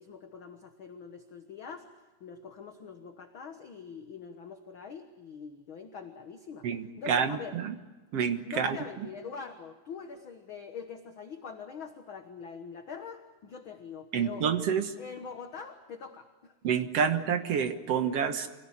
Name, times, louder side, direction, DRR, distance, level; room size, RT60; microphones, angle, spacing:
voice 1, 0.0-1.9 2.2-6.7 7.0-7.6 8.4-14.5 15.0-16.5 17.0-17.1, left 6 dB, 60° left, 6 dB, 1.4 m, -43 dB
voice 2, 6.6-7.8 8.1-8.8 14.1-14.9 16.6-18.5, right 7 dB, 55° right, 8 dB, 1.9 m, -28 dB
25.5 x 17.5 x 10.0 m, 1.2 s
omnidirectional pair, 4.1 m